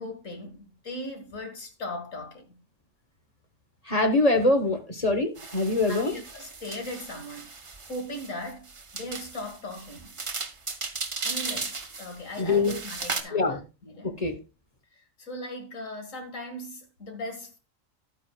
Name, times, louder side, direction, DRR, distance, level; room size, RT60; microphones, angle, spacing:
voice 1, 0.0-2.6 5.9-7.5 7.9-10.1 11.2-14.2 15.2-17.6, left 1 dB, 85° left, 2.3 m, -38 dB
voice 2, 3.8-6.1 12.4-12.7 13.3-13.6 14.0-14.4, left 2 dB, 30° left, 1.1 m, -24 dB
sound 1, 5.4-13.2, right 4 dB, 30° right, 0.8 m, -36 dB
11.5 x 9.0 x 2.3 m
omnidirectional pair, 1.3 m